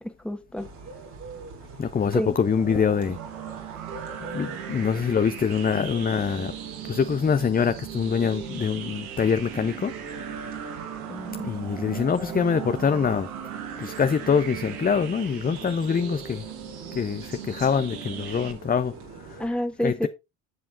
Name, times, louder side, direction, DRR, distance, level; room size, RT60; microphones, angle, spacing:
voice 1, 0.0-0.7 2.1-2.4 11.1-11.6 19.4-20.1, equal, ahead, 1.6 m, -29 dB
sound 1, 0.6-19.5, right 4 dB, 70° right, 4.2 m, -44 dB
voice 2, 1.8-3.2 4.2-6.5 6.8-10.4 11.4-13.3 13.8-16.5 16.9-19.5 19.8-20.1, left 6 dB, 20° left, 0.6 m, -25 dB
sound 2, 2.5-18.5, right 9 dB, 90° right, 1.4 m, -38 dB
11.5 x 7.6 x 2.6 m
hypercardioid pair, 55°, 42 cm